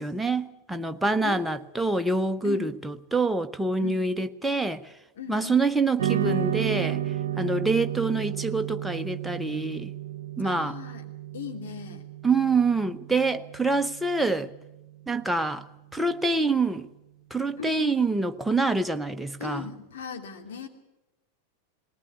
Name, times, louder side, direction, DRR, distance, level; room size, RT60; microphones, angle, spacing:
voice 1, 0.0-4.8 5.3-7.0 7.4-9.9 10.4-10.8 12.2-14.5 15.1-15.6 15.9-16.9 17.3-19.7, right 3 dB, 5° right, 0.8 m, -26 dB
voice 2, 1.2-1.6 2.4-2.7 3.8-4.1 5.2-5.5 10.4-11.0 11.3-12.0 17.6-18.2 19.4-20.7, left 7 dB, 60° left, 2.9 m, -38 dB
sound 1, 6.0-14.5, right 11 dB, 60° right, 0.9 m, -32 dB
19.5 x 18.5 x 8.5 m
figure-of-eight pair, 90°, 0 cm